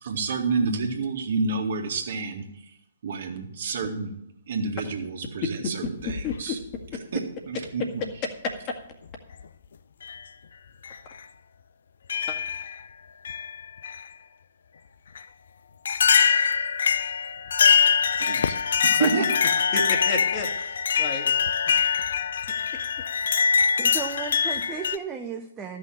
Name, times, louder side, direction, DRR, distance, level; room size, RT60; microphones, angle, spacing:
voice 1, 0.0-2.4 3.0-4.2 4.5-6.6 7.1-7.2 7.5-7.8 18.2-18.5 18.8-19.3, right 4 dB, 55° right, 3 dB, 2.1 m, -28 dB
sound 1, 6.0-6.8 8.0-8.1 9.1-9.4 10.0-10.2 10.8-11.0 12.1-12.8 13.2-14.0 15.1-15.2 15.8-25.0, left 7 dB, 60° left, 0.6 m, -23 dB
voice 2, 6.0-6.6 6.9-7.0 7.8-7.9 12.3-12.4 19.0-19.1 19.7-21.4, left 4 dB, 30° left, 3 dB, 2.0 m, -30 dB
voice 3, 23.8-25.8, right 6 dB, 15° right, 3 dB, 0.9 m, -34 dB
13.5 x 6.2 x 7.5 m, 0.79 s
figure-of-eight pair, 125°, 0 cm